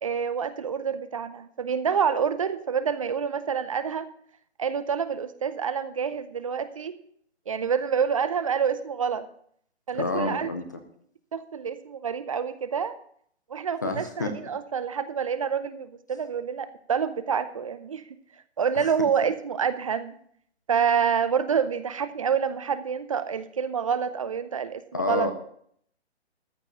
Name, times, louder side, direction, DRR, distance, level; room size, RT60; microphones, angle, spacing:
voice 1, 0.0-4.1 4.6-7.0 7.5-9.2 9.9-10.5 11.3-12.9 13.5-18.0 18.6-20.1 20.7-25.3, right 7 dB, 30° right, 13 dB, 0.6 m, -27 dB
voice 2, 9.9-10.6 13.8-14.3 18.7-18.9 24.9-25.3, left 3 dB, 15° left, 6 dB, 0.5 m, -28 dB
14.0 x 4.7 x 8.7 m, 0.63 s
hypercardioid pair, 160°, 33 cm